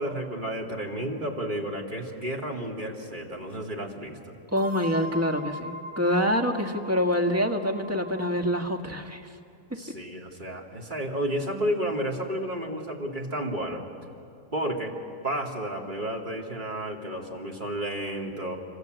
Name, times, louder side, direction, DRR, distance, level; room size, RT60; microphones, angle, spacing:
voice 1, 0.0-4.2 9.8-13.8 14.5-14.9 15.2-18.6, right 1 dB, 35° right, 0 dB, 2.8 m, -31 dB
sound 1, 1.1-3.4 4.6-8.8, left 1 dB, 80° right, 3.1 m, -41 dB
voice 2, 4.5-9.3 9.7-9.8, equal, 10° right, 4 dB, 1.5 m, -26 dB
27.0 x 26.5 x 8.0 m, 2.5 s
omnidirectional pair, 1.5 m